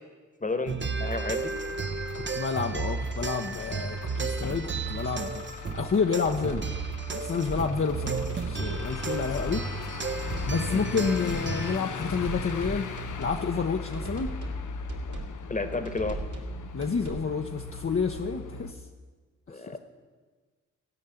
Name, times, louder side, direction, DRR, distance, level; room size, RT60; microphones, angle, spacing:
voice 1, 0.4-1.5 10.7-10.8 15.5-16.2 19.5-19.8, left 3 dB, 25° left, 9 dB, 1.3 m, -32 dB
sound 1, 0.7-11.8, right 5 dB, 40° right, 0.8 m, -33 dB
Truck / Idling, 1.0-18.7, left 5 dB, 80° left, 0.8 m, -38 dB
voice 2, 2.1-5.4 5.7-6.7 7.1-9.6 10.5-12.9 13.2-14.3 16.7-18.8 19.5-19.8, left 5 dB, 45° left, 2 dB, 0.8 m, -29 dB
sound 2, 6.3-6.9 7.2-7.7 8.2-8.9 9.1-9.6 10.1-10.8 11.0-11.5 12.0-13.4 13.9-14.6 14.9-15.4 15.9-16.5 16.8-17.3, right 3 dB, 70° right, 2.7 m, -38 dB
16.0 x 5.5 x 8.9 m, 1.4 s
cardioid pair, 60°, 30 cm